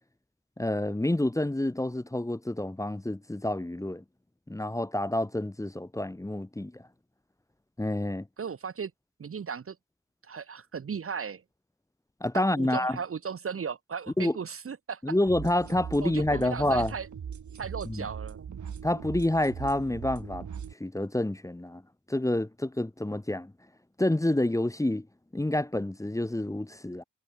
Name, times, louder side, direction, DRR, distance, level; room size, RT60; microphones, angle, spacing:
voice 1, 0.6-4.0 4.5-6.8 7.8-8.3 12.2-13.0 14.2-14.4 15.0-16.9 17.8-18.0 18.8-20.5 20.8-21.8 22.1-23.5 24.0-25.1 25.3-27.0, left 1 dB, 10° left, 1.0 m, -28 dB
voice 2, 8.4-8.9 9.2-9.8 10.2-11.4 12.3-15.0 16.0-17.1 17.6-18.5, right 6 dB, 45° right, 1.0 m, -36 dB
sound 1, 15.3-20.7, right 7 dB, 70° right, 3.5 m, -40 dB
wide cardioid pair, 105°, 31 cm